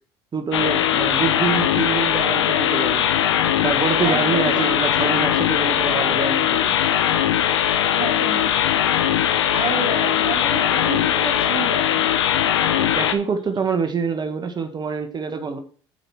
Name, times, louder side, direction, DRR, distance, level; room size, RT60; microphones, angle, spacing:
voice 1, 0.3-3.3 3.6-6.8 12.8-15.6, right 5 dB, 30° right, 8 dB, 1.5 m, -26 dB
sound 1, 0.5-13.1, left 10 dB, 90° left, 0.8 m, -20 dB
voice 2, 4.0-4.7 8.0-8.5 9.5-12.1, right 4 dB, 50° right, 0 dB, 4.0 m, -30 dB
8.3 x 5.0 x 6.3 m, 0.42 s
hypercardioid pair, 80°, 14 cm